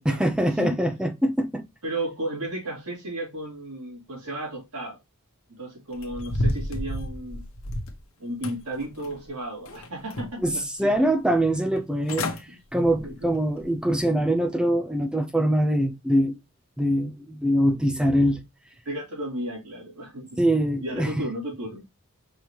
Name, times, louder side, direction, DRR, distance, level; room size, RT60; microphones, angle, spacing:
voice 1, 0.1-1.6 10.4-16.4 16.8-18.4 20.4-21.2, right 1 dB, 5° right, 0.4 m, -23 dB
voice 2, 1.8-5.0 5.6-7.4 8.2-10.9 12.5-12.6 13.0-13.3 18.8-20.4 20.8-21.8, right 1 dB, 85° right, 3.1 m, -34 dB
sound 1, 6.0-8.0 8.4-9.3 9.7-10.5 10.9-11.0 11.8-11.9 12.1-12.4 12.9-13.1 13.6-13.7, left 1 dB, 65° left, 1.0 m, -30 dB
5.4 x 3.2 x 2.9 m
head